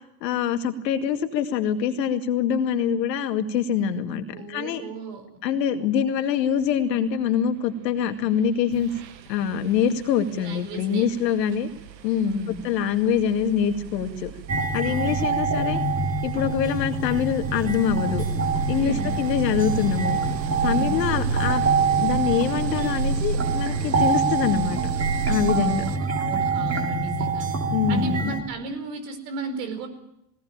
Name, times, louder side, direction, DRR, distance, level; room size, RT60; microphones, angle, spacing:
voice 1, 0.2-4.8 5.4-8.9 9.3-11.7 12.0-14.3 14.7-15.8 16.2-18.2 18.7-20.2 20.6-21.6 22.0-24.9 25.3-25.9 27.7-28.3, left 8 dB, 80° left, 7 dB, 2.3 m, -24 dB
voice 2, 4.3-5.3 10.4-11.1 12.3-12.7 14.8-15.5 18.7-19.2 20.7-21.1 25.5-27.5 27.9-29.9, right 2 dB, 70° right, 7 dB, 4.9 m, -34 dB
sound 1, 8.2-8.4 8.7-26.0, right 5 dB, 85° right, 1.4 m, -32 dB
sound 2, 14.5-28.4, right 4 dB, 30° right, 3.9 m, -26 dB
20.0 x 18.5 x 8.8 m, 0.84 s
hypercardioid pair, 80°, 49 cm